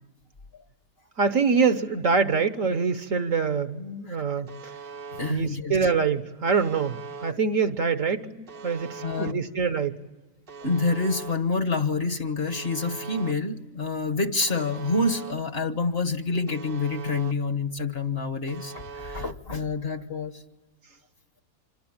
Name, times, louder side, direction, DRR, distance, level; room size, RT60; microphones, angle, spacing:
voice 1, 1.2-4.5 5.3-10.0, right 5 dB, 55° right, 10 dB, 1.4 m, -25 dB
Alarm, 4.5-5.3 6.5-7.3 8.5-9.3 10.5-11.3 12.5-13.3 14.5-15.3 16.5-17.3 18.5-19.3, right 5 dB, 40° right, 1.0 m, -40 dB
voice 2, 5.1-5.9 9.0-9.4 10.6-20.4, left 3 dB, 40° left, 9 dB, 1.4 m, -27 dB
27.0 x 23.5 x 8.8 m, 1.2 s
omnidirectional pair, 1.7 m